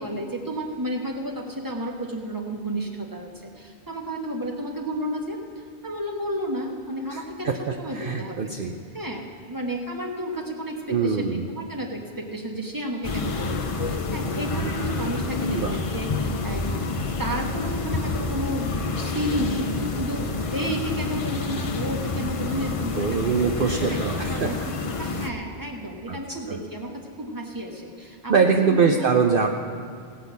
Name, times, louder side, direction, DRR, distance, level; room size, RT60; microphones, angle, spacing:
voice 1, 0.0-3.3 3.6-5.4 5.8-8.6 8.9-16.6 17.2-23.3 23.8-24.0 24.3-29.1, equal, 20° right, 2 dB, 1.4 m, -32 dB
voice 2, 7.1-7.6 7.9-8.7 10.9-11.5 15.5-15.8 23.0-24.5 26.1-26.2 26.5-26.6 28.3-29.5, right 5 dB, 60° right, 4 dB, 0.8 m, -23 dB
sound 1, 13.0-25.3, left 3 dB, 35° left, 0.7 m, -28 dB
16.5 x 5.8 x 8.1 m, 2.4 s
omnidirectional pair, 1.1 m